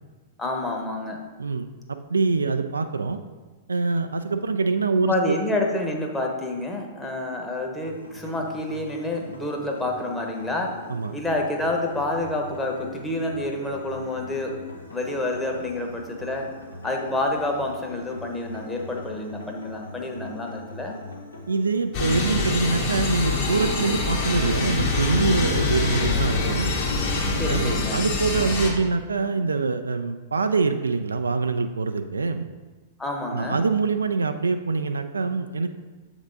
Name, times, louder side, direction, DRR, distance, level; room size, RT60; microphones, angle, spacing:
voice 1, 0.4-1.2 5.1-10.8 11.1-14.6 14.9-16.5 16.8-21.0 27.3-28.0 33.0-33.6, left 2 dB, 10° left, 0 dB, 0.9 m, -28 dB
voice 2, 1.4-3.2 3.7-5.4 10.9-11.1 21.5-26.7 27.5-32.5 33.3-35.7, right 4 dB, 80° right, 8 dB, 0.3 m, -24 dB
sound 1, 7.8-22.9, left 1 dB, 90° left, 1.0 m, -43 dB
sound 2, 21.9-28.7, left 3 dB, 45° left, 1.3 m, -25 dB
7.2 x 3.5 x 3.9 m, 1.3 s
figure-of-eight pair, 105°, 0 cm